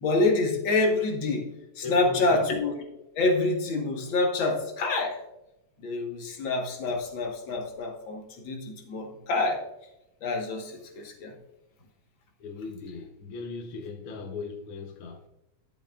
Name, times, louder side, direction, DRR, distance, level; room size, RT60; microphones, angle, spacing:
voice 1, 0.0-2.8 3.2-5.2 5.8-9.6 10.2-11.3, left 2 dB, 50° left, 2 dB, 1.5 m, -27 dB
voice 2, 1.8-2.5 12.4-15.2, left 4 dB, 85° left, 3 dB, 1.1 m, -38 dB
12.5 x 7.5 x 2.4 m, 0.90 s
omnidirectional pair, 3.6 m